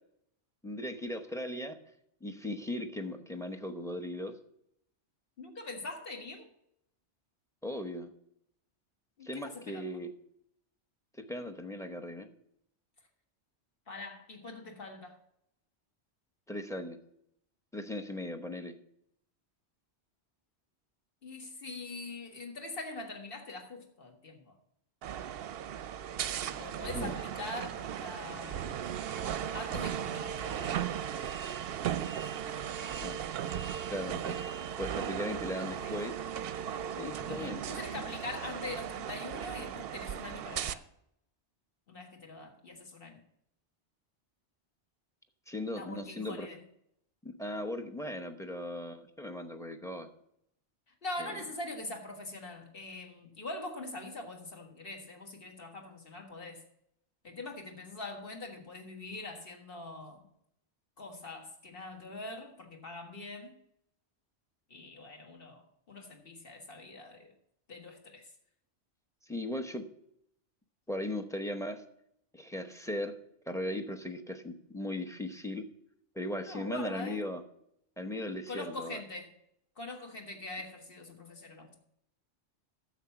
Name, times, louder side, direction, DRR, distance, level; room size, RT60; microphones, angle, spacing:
voice 1, 0.6-1.8 2.2-4.3 7.6-8.1 9.2-10.1 11.2-12.3 16.5-17.0 17.7-18.7 26.9-27.2 33.0-33.2 33.9-34.4 34.8-36.2 36.9-37.6 45.5-46.5 47.2-50.1 51.2-51.3 69.3-69.8 70.9-71.8 72.3-73.1 73.5-75.7 76.1-77.4 78.0-79.0, left 1 dB, 5° left, 7 dB, 0.7 m, -38 dB
voice 2, 5.4-6.5 9.2-10.0 13.9-15.2 21.2-24.6 26.6-28.8 29.5-31.0 35.8-36.0 37.3-40.9 41.9-43.2 45.7-46.6 50.9-56.6 57.2-60.3 61.0-63.5 64.7-67.3 67.7-68.3 76.5-77.2 78.5-79.3 79.8-81.8, left 2 dB, 55° left, 2 dB, 1.8 m, -43 dB
sound 1, 25.0-40.7, right 9 dB, 65° right, 0.7 m, -37 dB
10.0 x 7.2 x 5.8 m, 0.75 s
omnidirectional pair, 1.2 m